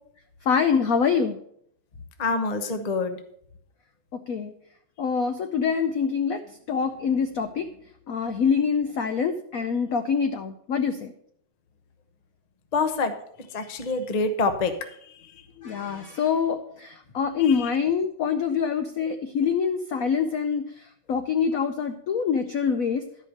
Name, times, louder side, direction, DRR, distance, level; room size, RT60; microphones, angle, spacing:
voice 1, 0.5-1.4 4.1-4.5 5.0-7.7 8.1-11.1 15.6-20.6 21.1-23.1, left 6 dB, 70° left, 7 dB, 0.8 m, -25 dB
voice 2, 2.2-3.2 12.7-13.1 13.4-14.7 15.1-15.2 17.4-17.7, left 3 dB, 40° left, 8 dB, 0.5 m, -26 dB
12.0 x 5.4 x 6.4 m, 0.68 s
omnidirectional pair, 2.3 m